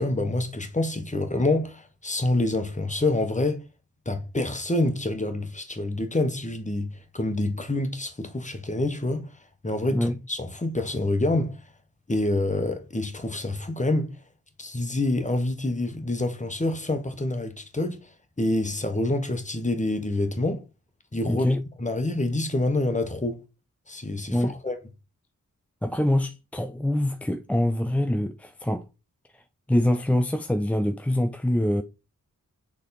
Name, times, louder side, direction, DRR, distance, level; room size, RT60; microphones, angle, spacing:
voice 1, 0.0-3.6 4.0-9.3 9.6-11.6 12.1-14.1 14.6-18.1 18.4-20.6 21.1-21.5 21.8-23.4 23.9-24.8, left 2 dB, 20° left, 1.2 m, -27 dB
voice 2, 21.3-21.6 24.3-24.5 25.8-28.8 29.3-29.4 29.7-31.8, left 1 dB, 5° left, 0.3 m, -24 dB
6.5 x 3.6 x 4.1 m
wide cardioid pair, 75°, 34 cm